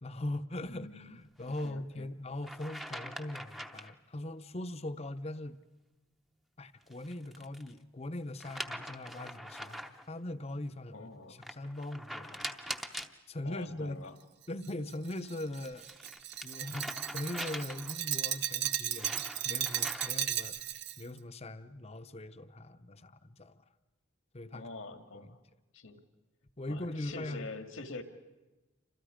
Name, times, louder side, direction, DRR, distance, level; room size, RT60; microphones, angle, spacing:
voice 1, 0.0-5.6 6.6-12.5 13.3-14.1 14.5-15.9 16.4-20.6 21.0-23.6 24.3-24.6 25.2-25.3 26.6-27.5, left 1 dB, 30° left, 10 dB, 0.8 m, -40 dB
voice 2, 0.7-1.2 1.5-2.1 10.9-11.4 13.4-14.2 24.5-25.4 25.7-26.0 26.7-28.0, left 3 dB, 80° left, 7 dB, 2.0 m, -45 dB
sound 1, 1.4-1.7 2.4-4.0 6.8-7.7 8.4-10.1 11.4-13.2 15.2-18.1 18.6-20.3, equal, ahead, 0.8 m, -43 dB
Glass, 14.6-21.0, right 12 dB, 55° right, 0.8 m, -35 dB
29.0 x 26.0 x 5.1 m, 1.1 s
head